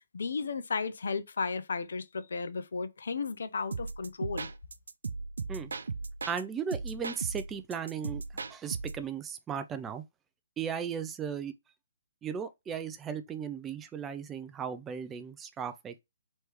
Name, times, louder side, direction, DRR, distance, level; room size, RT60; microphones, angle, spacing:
voice 1, 0.0-4.5, left 4 dB, 75° left, 0.7 m, -34 dB
sound 1, 3.7-6.4 6.7-9.0, right 4 dB, 85° right, 0.5 m, -37 dB
voice 2, 6.3-8.2 8.5-10.0 10.6-11.5 12.2-16.0, right 7 dB, 10° right, 0.4 m, -36 dB
3.3 x 3.2 x 4.6 m
hypercardioid pair, 160°, 0 cm